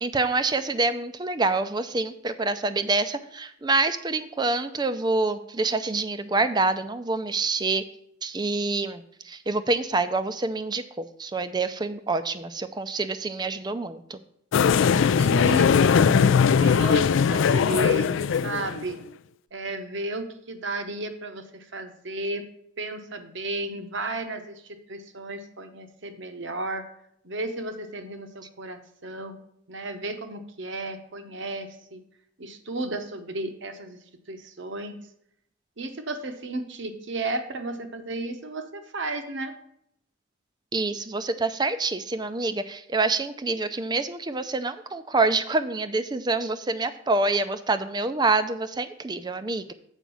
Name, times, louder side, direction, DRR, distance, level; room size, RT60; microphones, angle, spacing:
voice 1, 0.0-7.8 8.2-14.2 40.7-49.7, right 3 dB, 20° right, 11 dB, 0.5 m, -26 dB
sound 1, 14.5-18.9, left 6 dB, 65° left, 0.3 m, -20 dB
voice 2, 15.2-19.0 19.5-22.5 22.8-26.8 27.2-29.3 29.7-32.0 32.4-34.9 35.8-39.5, right 2 dB, 60° right, 8 dB, 1.0 m, -33 dB
7.3 x 5.1 x 7.0 m, 0.72 s
head